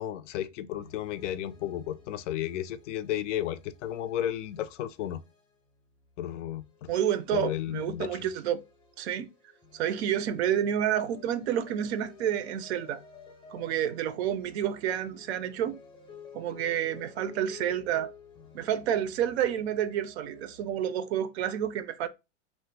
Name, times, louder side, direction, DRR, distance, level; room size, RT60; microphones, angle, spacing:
voice 1, 0.0-5.2 6.2-6.9 7.3-8.3, left 12 dB, 75° left, 0.5 m, -33 dB
sound 1, 0.8-20.7, left 6 dB, 15° left, 0.6 m, -54 dB
voice 2, 6.9-8.6 9.0-9.3 9.7-13.0 13.5-15.8 16.3-18.1 18.5-22.1, right 10 dB, 60° right, 0.5 m, -29 dB
3.0 x 2.0 x 3.2 m
supercardioid pair, 150°, 38 cm